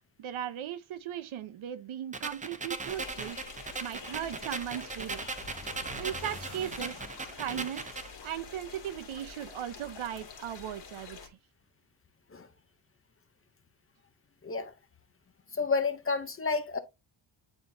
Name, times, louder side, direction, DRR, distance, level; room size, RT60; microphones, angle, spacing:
voice 1, 0.2-3.4 3.8-5.4 6.0-7.0 7.4-7.8 8.2-11.4, right 10 dB, 70° right, 0.8 m, -37 dB
sound 1, 2.1-8.1, right 3 dB, 15° right, 0.5 m, -39 dB
sound 2, 2.8-11.3, left 5 dB, 55° left, 2.1 m, -47 dB
sound 3, 4.8-7.6, equal, 35° right, 2.2 m, -48 dB
voice 2, 14.4-14.7 15.5-16.8, left 4 dB, 25° left, 0.6 m, -30 dB
9.2 x 4.2 x 2.6 m
wide cardioid pair, 170°, 50 cm